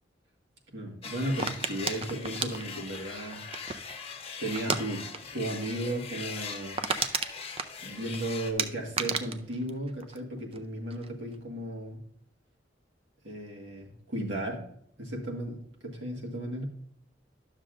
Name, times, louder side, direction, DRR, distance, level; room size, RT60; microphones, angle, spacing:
voice 1, 0.7-3.4 4.4-5.1 5.3-6.8 7.8-12.0 13.2-14.7 15.0-16.6, right 1 dB, 70° right, -1 dB, 1.7 m, -35 dB
sound 1, 1.0-8.5, left 5 dB, 30° left, 0.8 m, -41 dB
sound 2, 1.4-4.0 4.6-4.8 5.1-5.4 5.6-5.7 6.1-6.2 6.5-8.2 8.6-10.6 10.9-11.4, right 5 dB, 30° right, 0.4 m, -32 dB
11.5 x 6.6 x 2.5 m, 0.69 s
head